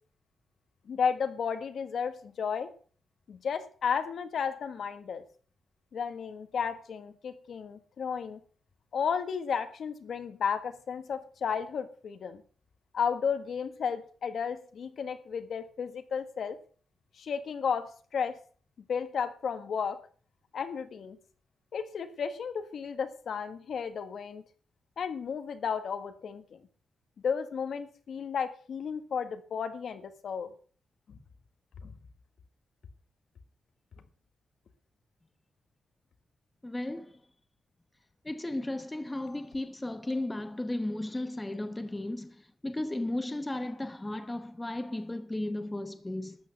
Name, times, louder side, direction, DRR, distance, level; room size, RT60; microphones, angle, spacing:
voice 1, 0.8-2.7 3.3-5.2 5.9-8.4 8.9-12.4 12.9-16.6 17.1-18.4 18.9-20.0 20.5-21.2 21.7-24.4 25.0-26.6 27.2-30.5 31.1-31.2 31.8-31.9, left 6 dB, 65° left, 1.6 m, -33 dB
voice 2, 36.6-37.2 38.2-46.4, left 1 dB, 10° left, 1.0 m, -35 dB
13.0 x 8.6 x 6.7 m
wide cardioid pair, 145°, 0 cm